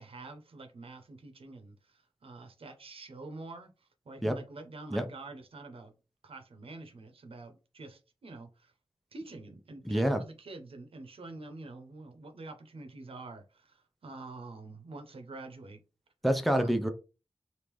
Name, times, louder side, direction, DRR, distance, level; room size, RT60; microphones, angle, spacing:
voice 1, 0.0-1.7 2.2-3.7 4.1-5.9 6.2-8.7 9.1-13.8 14.0-15.8 16.5-16.7, right 2 dB, 80° right, 0.7 m, -46 dB
voice 2, 9.8-10.2 16.2-16.9, equal, ahead, 0.5 m, -27 dB
3.5 x 2.5 x 3.0 m
wide cardioid pair, 80°, 9 cm